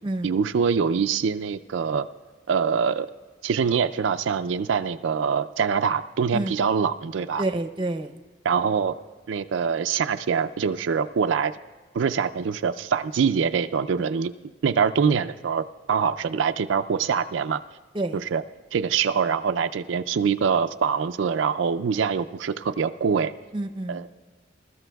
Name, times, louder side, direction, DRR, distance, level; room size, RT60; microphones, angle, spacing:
voice 1, 0.2-2.1 2.5-3.1 3.4-7.4 8.4-9.0 9.3-11.5 11.9-14.3 14.6-17.6 18.1-18.4 18.7-23.3 23.9-24.1, right 6 dB, 85° right, 9 dB, 0.4 m, -24 dB
voice 2, 7.4-8.2 17.9-18.2 23.5-24.0, right 2 dB, 25° right, 5 dB, 0.6 m, -28 dB
21.5 x 13.0 x 2.3 m, 1.4 s
head